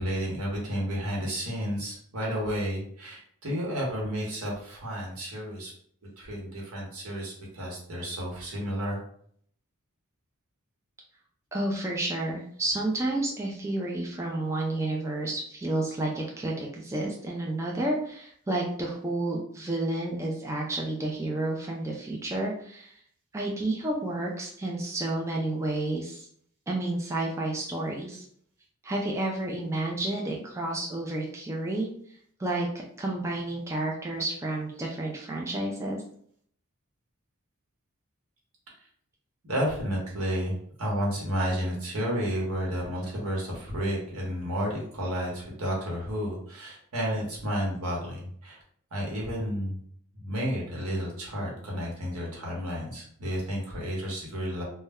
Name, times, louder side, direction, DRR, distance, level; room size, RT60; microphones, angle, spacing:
voice 1, 0.0-5.7 6.2-9.0 39.4-48.6 48.9-49.8 50.2-54.6, equal, 70° right, -3 dB, 1.0 m, -31 dB
voice 2, 11.5-22.9 23.3-26.3 26.7-28.3 28.8-32.7 33.0-36.0, right 2 dB, 15° right, -2 dB, 0.3 m, -31 dB
2.1 x 2.1 x 3.4 m, 0.62 s
head